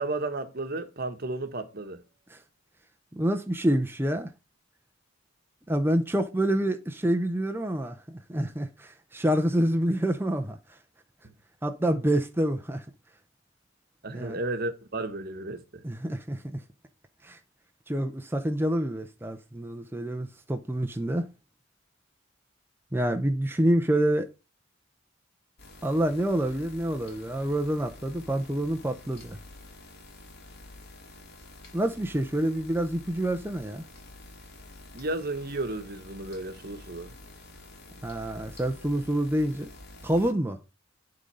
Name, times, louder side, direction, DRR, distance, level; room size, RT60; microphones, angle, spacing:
voice 1, 0.0-2.0 11.2-11.3 14.0-15.8 34.9-37.1, right 2 dB, 50° right, 1.1 m, -33 dB
voice 2, 3.1-4.3 5.7-10.8 11.6-12.9 14.1-14.4 15.8-16.6 17.2-17.4 17.9-21.3 22.9-24.3 25.8-29.4 31.7-33.8 38.0-39.7 40.0-40.6, right 1 dB, 10° right, 0.7 m, -27 dB
sound 1, 25.6-40.3, left 2 dB, 55° left, 2.7 m, -48 dB
11.5 x 3.9 x 5.5 m
head